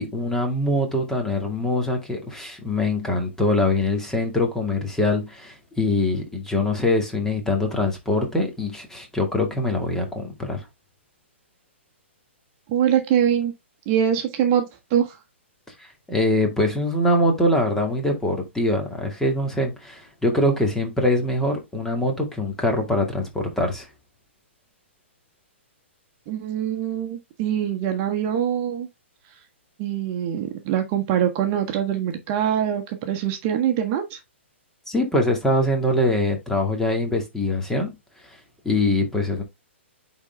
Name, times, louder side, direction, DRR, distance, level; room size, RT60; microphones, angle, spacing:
voice 1, 0.0-10.7 15.8-23.9 34.9-37.9 38.6-39.4, left 1 dB, 5° left, 2.2 m, -23 dB
voice 2, 12.7-13.5 13.9-15.2 26.3-28.9 29.8-34.2, right 9 dB, 35° right, 1.4 m, -23 dB
9.6 x 4.1 x 3.4 m
figure-of-eight pair, 120°, 7 cm